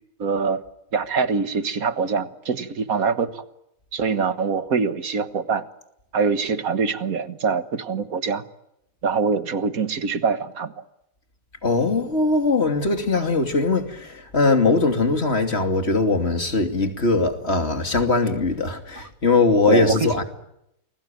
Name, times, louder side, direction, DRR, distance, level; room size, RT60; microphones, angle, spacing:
voice 1, 0.2-0.6 0.9-3.4 3.9-5.7 6.1-8.4 9.0-10.8 19.0-19.1 19.7-20.2, right 5 dB, 65° right, 1.8 m, -24 dB
voice 2, 11.6-20.2, left 3 dB, 45° left, 3.0 m, -21 dB
29.0 x 22.0 x 9.0 m
omnidirectional pair, 1.6 m